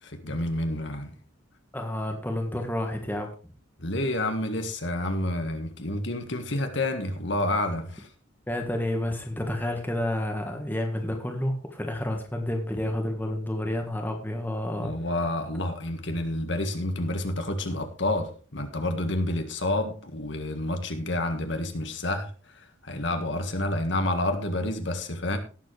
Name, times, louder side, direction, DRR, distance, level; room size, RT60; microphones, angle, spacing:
voice 1, 0.0-1.1 3.8-8.1 14.8-25.4, left 1 dB, 60° left, 1.7 m, -29 dB
voice 2, 1.7-3.3 8.5-14.9, left 1 dB, 10° left, 1.5 m, -30 dB
18.0 x 7.5 x 3.3 m
head